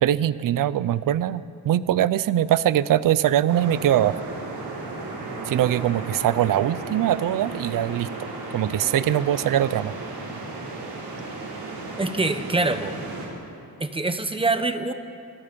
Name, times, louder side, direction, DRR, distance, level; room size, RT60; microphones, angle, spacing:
voice 1, 0.0-4.2 5.5-8.1 8.5-9.9, right 11 dB, 55° right, 16 dB, 0.6 m, -22 dB
sound 1, 3.5-13.3, right 3 dB, 85° right, 6.6 m, -35 dB
voice 2, 12.0-13.0 13.8-14.9, right 3 dB, 15° right, 9 dB, 1.0 m, -24 dB
26.0 x 24.0 x 5.2 m, 2.5 s
wide cardioid pair, 175°, 40 cm